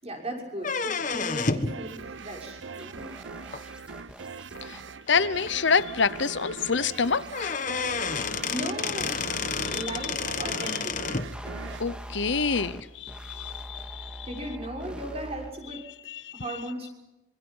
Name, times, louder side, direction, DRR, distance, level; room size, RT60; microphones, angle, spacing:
voice 1, 0.0-3.1 8.5-9.2 9.7-11.0 14.2-15.8 16.3-16.9, right 1 dB, 30° right, 6.2 m, -37 dB
sound 1, 0.6-1.8 3.5-3.6 4.6-4.7 5.1-5.2 5.5-5.6 6.9-7.0 7.3-11.3, left 5 dB, 40° left, 1.3 m, -30 dB
sound 2, 1.7-12.9, right 4 dB, 75° right, 0.8 m, -41 dB
sound 3, 1.9-2.0 2.4-4.9 5.3-6.3 6.6-8.5 8.9-10.6 10.9-12.8 13.1-15.5, equal, 5° right, 1.9 m, -44 dB
voice 2, 5.1-7.6 9.6-9.9 11.8-14.3 16.1-16.3, left 5 dB, 70° left, 0.8 m, -27 dB
26.5 x 25.5 x 5.6 m
head